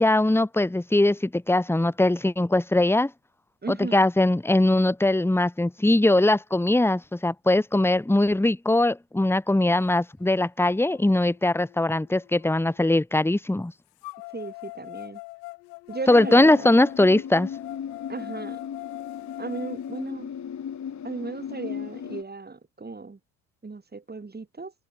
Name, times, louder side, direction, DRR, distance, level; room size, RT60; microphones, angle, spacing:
voice 1, 0.0-3.1 3.9-13.7 16.1-17.5, left 2 dB, 5° left, 1.7 m, -21 dB
voice 2, 3.6-4.1 14.3-15.2 15.9-16.8 18.1-18.6 19.4-20.3 21.0-23.2 23.6-24.7, right 4 dB, 20° right, 3.7 m, -36 dB
sound 1, 10.2-10.3 10.9-12.8 14.0-20.0, left 26 dB, 75° left, 4.0 m, -42 dB
sound 2, 16.1-22.2, left 8 dB, 35° left, 2.0 m, -36 dB
open air
hypercardioid pair, 60°, 49 cm